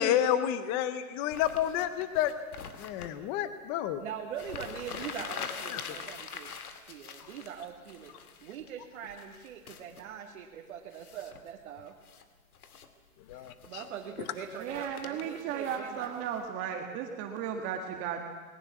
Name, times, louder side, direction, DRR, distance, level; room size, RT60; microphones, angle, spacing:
voice 1, 0.0-2.3 2.8-4.0 5.7-6.0 13.3-13.8, left 10 dB, 20° left, 12 dB, 0.5 m, -30 dB
sound 1, 1.3-3.1 4.0-4.1 4.3-8.7 9.1-10.0 10.9-11.5 11.9-12.3 12.5-12.9 13.3-16.4, left 6 dB, 85° left, 2.3 m, -44 dB
voice 2, 4.0-6.5 6.9-8.1 8.4-11.9 13.3-16.2, right 8 dB, 55° right, 0 dB, 2.2 m, -42 dB
voice 3, 14.6-18.2, right 8 dB, 30° right, 3 dB, 1.8 m, -35 dB
20.5 x 20.0 x 7.3 m, 1.4 s
hypercardioid pair, 150°, 43 cm